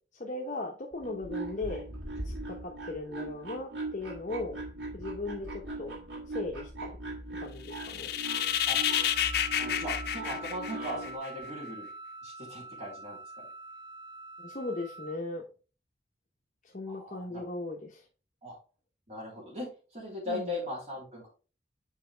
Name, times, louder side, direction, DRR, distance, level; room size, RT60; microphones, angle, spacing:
voice 1, 0.1-1.8 2.2-4.6 4.9-5.9 6.3-6.9 7.4-8.1 14.4-15.4 16.6-18.1 20.3-20.5, left 2 dB, 45° left, -1 dB, 1.0 m, -37 dB
sound 1, 0.9-11.2, right 2 dB, 85° right, 2.6 m, -40 dB
sound 2, 7.7-11.3, left 11 dB, 60° left, 0.6 m, -30 dB
Wind instrument woodwind instrument, 8.3-15.2, right 2 dB, 25° right, 0.5 m, -45 dB
voice 2, 9.5-11.9 12.2-13.2 16.9-17.4 18.4-18.6 19.1-21.3, left 1 dB, 40° right, -5 dB, 3.2 m, -39 dB
7.5 x 4.7 x 3.3 m, 0.35 s
head